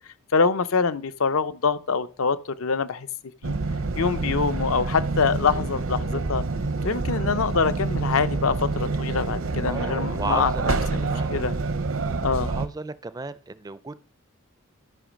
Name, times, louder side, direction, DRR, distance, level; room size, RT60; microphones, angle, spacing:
voice 1, 0.3-3.1 3.4-3.5 4.0-6.4 6.8-11.6 12.2-12.5, left 5 dB, 70° left, 0.6 m, -25 dB
sound 1, 3.4-12.7, right 3 dB, 65° right, 0.8 m, -27 dB
voice 2, 9.7-11.3 12.5-14.0, right 3 dB, 15° right, 0.4 m, -34 dB
13.0 x 5.2 x 5.1 m
head